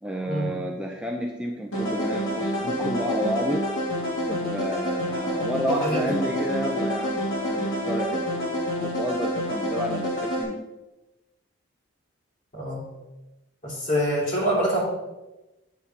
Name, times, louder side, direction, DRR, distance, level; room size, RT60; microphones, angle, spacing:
voice 1, 0.0-3.7 4.3-8.2 8.8-10.6, equal, 5° right, 0 dB, 0.6 m, -30 dB
sound 1, 1.7-10.4, equal, 75° left, 2.6 m, -28 dB
voice 2, 5.7-6.1 12.5-12.9 13.6-14.8, equal, 40° left, -5 dB, 3.0 m, -25 dB
8.5 x 4.2 x 5.8 m, 1.0 s
head